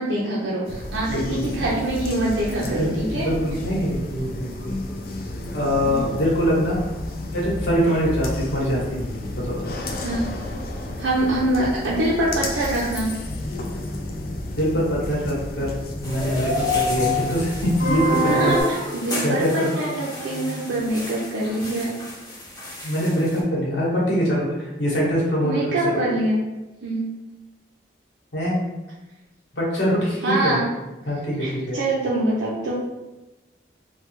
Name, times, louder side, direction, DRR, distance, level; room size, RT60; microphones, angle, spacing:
voice 1, 0.0-3.3 5.8-6.1 10.0-10.3 11.0-13.1 18.1-18.6 18.9-22.0 22.8-22.9 25.4-26.4 26.8-27.2 30.2-30.6 31.4-32.7, right 1 dB, 85° right, -6 dB, 0.5 m, -24 dB
sound 1, 0.7-18.6, equal, 50° left, 0.4 m, -30 dB
voice 2, 1.1-1.5 2.8-2.9 3.1-4.7 5.5-6.8 7.3-9.0 9.3-9.7 14.5-15.8 16.0-18.6 19.1-19.7 22.8-25.9 28.3-28.6 29.5-30.6 31.1-31.8, equal, 70° left, -5 dB, 1.1 m, -23 dB
sound 2, 16.0-23.4, left 3 dB, 20° left, 0.7 m, -30 dB
3.1 x 2.2 x 3.1 m, 1.1 s
head